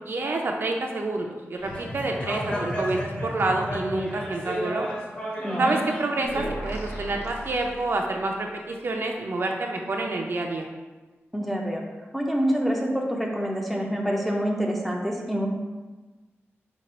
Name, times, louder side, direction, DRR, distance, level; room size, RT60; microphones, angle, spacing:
voice 1, 0.0-4.9 5.6-10.7, right 2 dB, 55° right, 1 dB, 0.5 m, -28 dB
sound 1, 1.6-6.5, equal, 25° left, 0.9 m, -32 dB
voice 2, 5.4-5.7 11.3-11.8 12.1-15.5, equal, ahead, -1 dB, 0.5 m, -26 dB
sound 2, 6.2-8.4, right 1 dB, 70° left, 0.9 m, -36 dB
5.3 x 2.4 x 4.2 m, 1.2 s
wide cardioid pair, 160°, 5 cm